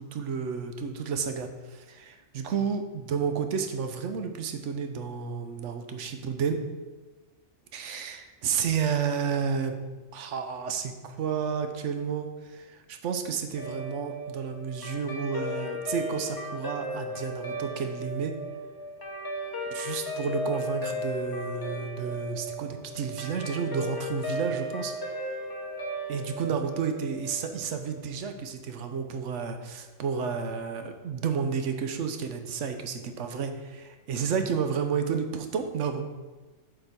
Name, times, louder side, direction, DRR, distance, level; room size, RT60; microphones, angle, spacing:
voice 1, 0.0-6.6 7.7-9.8 10.1-18.4 19.7-24.9 26.1-36.0, right 6 dB, 80° right, 7 dB, 1.0 m, -31 dB
Guitar, 13.5-28.1, equal, 20° left, 0.7 m, -36 dB
7.8 x 4.5 x 4.3 m, 1.3 s
omnidirectional pair, 1.3 m